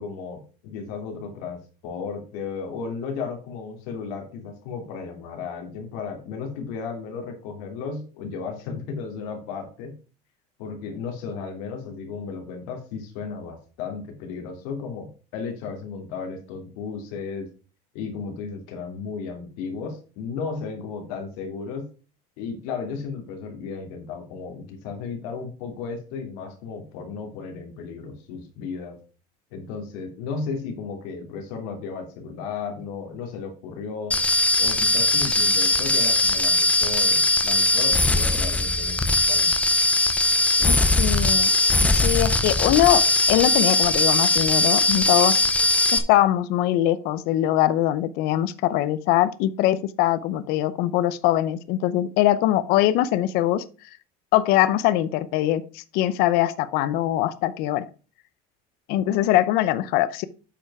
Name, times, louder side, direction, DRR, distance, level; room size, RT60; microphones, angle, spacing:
voice 1, 0.0-10.0 10.6-17.5 17.9-21.9 22.4-29.0 29.5-34.2 34.6-39.5, left 5 dB, 80° left, 4 dB, 2.8 m, -34 dB
sound 1, 34.1-46.0, left 2 dB, 5° left, 0.7 m, -20 dB
voice 2, 40.6-41.5 41.8-43.0 43.3-45.4 45.9-53.6 54.3-57.8 58.9-60.3, left 13 dB, 55° left, 14 dB, 0.7 m, -22 dB
8.7 x 5.6 x 4.8 m, 0.36 s
cardioid pair, 175°, 19 cm